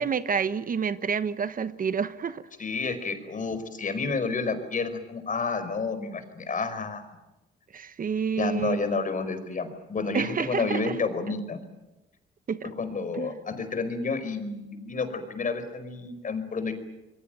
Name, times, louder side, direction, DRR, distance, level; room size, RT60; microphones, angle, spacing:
voice 1, 0.0-2.4 7.7-8.8 10.1-10.9 12.5-12.7 13.1-13.4, right 6 dB, 45° right, 13 dB, 1.1 m, -29 dB
voice 2, 2.6-7.0 8.3-11.6 12.8-16.7, left 4 dB, 40° left, 9 dB, 5.0 m, -30 dB
27.0 x 22.5 x 9.1 m, 1.0 s
cardioid pair, 90°, 20 cm